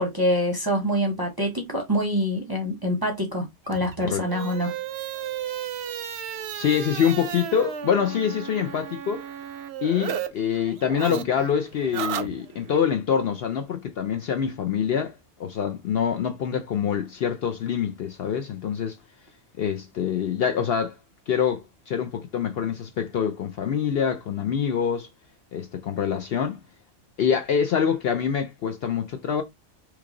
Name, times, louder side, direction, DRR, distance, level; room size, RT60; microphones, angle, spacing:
voice 1, 0.0-4.7, equal, 25° right, 0.6 m, -25 dB
sound 1, 3.7-10.3 10.6-12.8, right 9 dB, 65° right, 0.7 m, -34 dB
voice 2, 6.5-9.2 9.8-19.0 19.6-21.0 21.3-25.1 25.5-26.6 27.2-29.4, left 8 dB, 60° left, 0.7 m, -25 dB
3.1 x 2.2 x 3.7 m
omnidirectional pair, 1.3 m